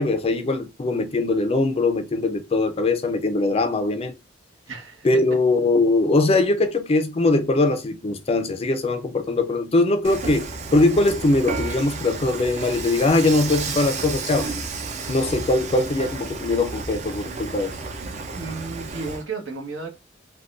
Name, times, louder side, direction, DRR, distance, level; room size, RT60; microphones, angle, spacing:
voice 1, 0.0-4.1 5.0-14.5 15.1-17.7, left 2 dB, 30° left, 0.4 m, -21 dB
voice 2, 4.7-5.2 18.3-19.9, right 4 dB, 80° right, 1.1 m, -33 dB
Dishes pots and pans / Frying (food), 10.0-19.2, right 4 dB, 40° right, 0.4 m, -32 dB
3.5 x 2.2 x 2.4 m
head